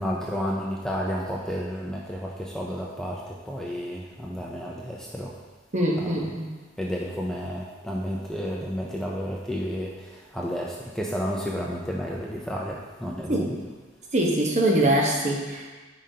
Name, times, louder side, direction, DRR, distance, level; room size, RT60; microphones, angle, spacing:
voice 1, 0.0-5.3 6.0-6.3 6.8-13.5, equal, 5° left, -4 dB, 0.5 m, -31 dB
voice 2, 5.7-6.5 13.3-13.5 14.1-15.7, right 1 dB, 35° right, -1 dB, 1.0 m, -23 dB
8.9 x 5.1 x 2.8 m, 1.3 s
head